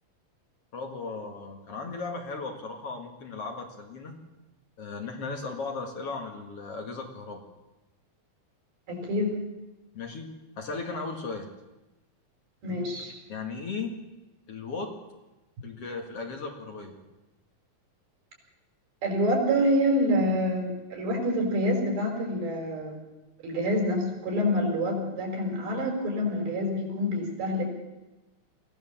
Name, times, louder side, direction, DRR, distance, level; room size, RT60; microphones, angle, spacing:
voice 1, 0.7-4.2 4.8-7.4 9.9-11.5 13.3-14.0 14.5-14.9 15.6-17.0, left 4 dB, 45° left, 3 dB, 2.5 m, -36 dB
voice 2, 8.9-9.4 12.6-13.1 19.0-22.9 23.4-27.7, equal, 90° right, 1 dB, 6.7 m, -27 dB
22.5 x 15.5 x 7.3 m, 1.1 s
omnidirectional pair, 4.1 m